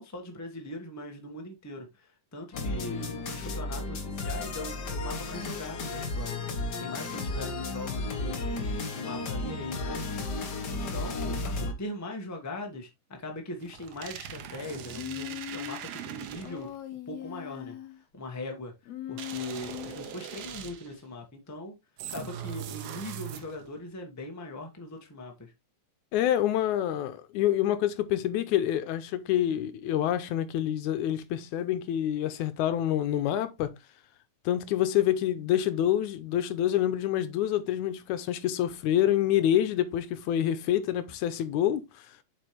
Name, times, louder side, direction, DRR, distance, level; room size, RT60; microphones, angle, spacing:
voice 1, 0.0-10.0 10.8-16.7 17.1-17.8 18.1-18.7 19.1-21.7 22.1-25.5, left 1 dB, 10° left, 1.0 m, -40 dB
sound 1, 2.5-11.7, left 2 dB, 45° left, 1.4 m, -33 dB
sound 2, 13.6-16.8 19.2-21.0 22.0-23.7, right 9 dB, 65° right, 1.7 m, -41 dB
Human voice, 14.9-15.9 16.4-18.0 18.9-20.1, left 12 dB, 70° left, 1.9 m, -40 dB
voice 2, 26.1-33.7 34.5-42.0, left 11 dB, 85° left, 2.1 m, -27 dB
7.8 x 5.2 x 3.2 m
omnidirectional pair, 3.4 m